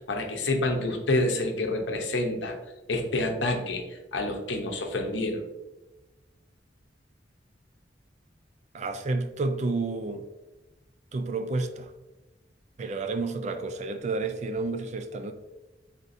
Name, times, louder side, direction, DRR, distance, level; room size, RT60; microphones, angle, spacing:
voice 1, 0.1-2.5 2.9-5.4, left 2 dB, 80° left, 0.7 m, -28 dB
voice 2, 8.7-10.3 11.1-11.9 12.8-15.3, right 3 dB, 40° right, 0.3 m, -30 dB
4.0 x 3.6 x 2.6 m
head